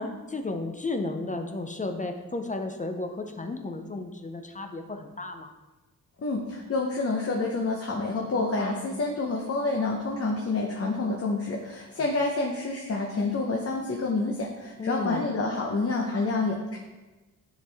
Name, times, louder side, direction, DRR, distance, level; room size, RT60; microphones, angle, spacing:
voice 1, 0.0-5.5 14.8-15.3, left 2 dB, 25° left, 5 dB, 0.5 m, -33 dB
voice 2, 6.2-16.8, left 3 dB, 45° left, -1 dB, 0.8 m, -28 dB
10.0 x 4.5 x 3.4 m, 1.2 s
wide cardioid pair, 130°, 33 cm